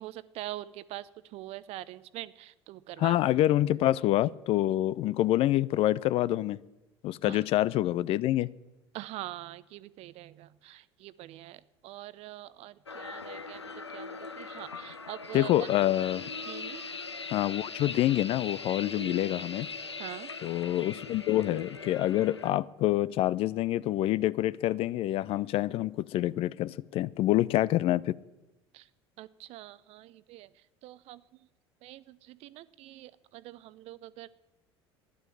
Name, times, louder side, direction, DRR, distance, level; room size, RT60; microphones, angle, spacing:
voice 1, 0.0-3.2 7.2-7.4 8.9-15.7 16.5-16.8 20.0-20.3 28.7-28.9 29.2-31.2 31.8-34.3, right 15 dB, 50° right, 0.6 m, -44 dB
voice 2, 3.0-6.6 7.0-8.5 15.3-16.2 17.3-19.7 20.4-28.2, left 14 dB, 45° left, 0.4 m, -27 dB
sound 1, 12.9-22.5, left 4 dB, 90° left, 0.6 m, -40 dB
12.0 x 11.0 x 7.6 m
figure-of-eight pair, 65°, 14 cm